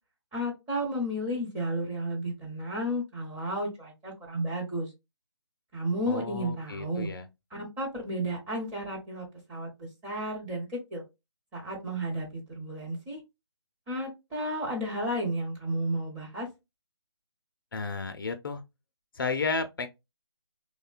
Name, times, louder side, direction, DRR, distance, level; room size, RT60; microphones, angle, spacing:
voice 1, 0.3-4.9 5.7-7.1 7.5-11.0 11.5-13.2 13.9-16.5, right 1 dB, 10° right, 0.7 m, -33 dB
voice 2, 6.1-7.3 17.7-18.6 19.2-19.9, left 4 dB, 50° left, 0.4 m, -32 dB
3.2 x 2.1 x 2.3 m
figure-of-eight pair, 155°, 14 cm